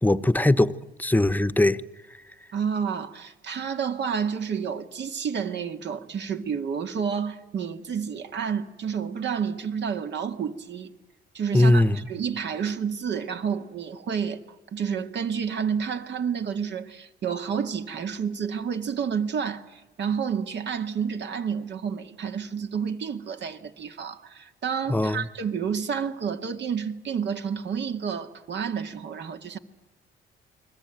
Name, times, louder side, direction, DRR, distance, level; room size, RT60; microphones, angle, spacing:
voice 1, 0.0-1.8 11.5-12.0 24.9-25.3, left 1 dB, 10° left, 1.0 m, -21 dB
voice 2, 2.5-10.9 11.3-11.8 12.1-14.4 14.7-29.6, right 7 dB, 60° right, 2.1 m, -30 dB
29.5 x 22.0 x 9.1 m
cardioid pair, 90°, 20 cm